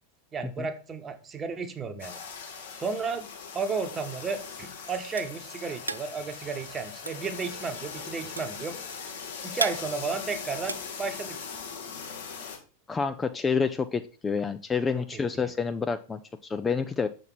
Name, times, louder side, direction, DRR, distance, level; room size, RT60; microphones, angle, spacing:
voice 1, 0.3-2.2 2.7-3.3 3.5-8.8 9.4-11.4 14.9-15.5, right 5 dB, 20° right, 8 dB, 1.1 m, -33 dB
sound 1, 2.0-12.6, left 6 dB, 60° left, 1.7 m, -40 dB
sound 2, 4.9-11.7, right 4 dB, 80° right, 0.3 m, -37 dB
voice 2, 12.9-17.1, left 5 dB, 15° left, 10 dB, 0.4 m, -28 dB
7.0 x 5.9 x 4.4 m, 0.36 s
figure-of-eight pair, 90°, 0 cm